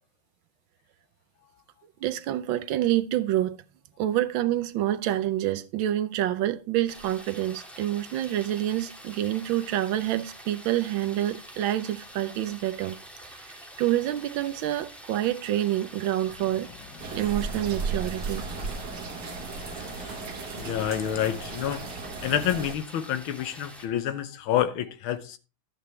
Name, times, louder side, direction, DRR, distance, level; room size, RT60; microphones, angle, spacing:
voice 1, 2.0-3.6 4.0-13.0 13.5-16.7 17.1-18.5, right 13 dB, 75° right, 1.4 m, -27 dB
sound 1, 6.9-23.9, right 1 dB, ahead, 1.5 m, -46 dB
sound 2, 16.3-22.5, left 9 dB, 60° left, 1.2 m, -48 dB
sound 3, 17.0-22.8, right 4 dB, 55° right, 1.8 m, -35 dB
voice 2, 19.6-20.2 20.5-21.9 22.2-25.4, left 10 dB, 75° left, 1.7 m, -29 dB
12.0 x 8.4 x 3.2 m
omnidirectional pair, 2.3 m